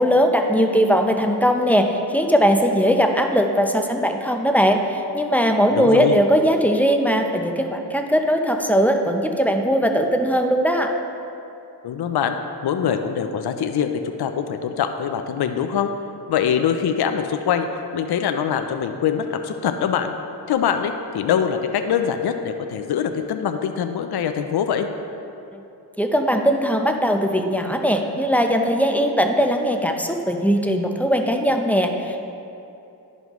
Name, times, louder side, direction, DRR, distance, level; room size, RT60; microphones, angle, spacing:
voice 1, 0.0-10.9 25.5-25.6 26.0-32.2, equal, 5° left, 4 dB, 0.6 m, -19 dB
voice 2, 5.7-6.2 11.8-12.4 12.6-15.9 16.3-17.7 17.9-20.1 20.5-24.9, left 8 dB, 65° left, 7 dB, 0.5 m, -23 dB
11.0 x 5.4 x 3.1 m, 2.8 s
cardioid pair, 45°, 42 cm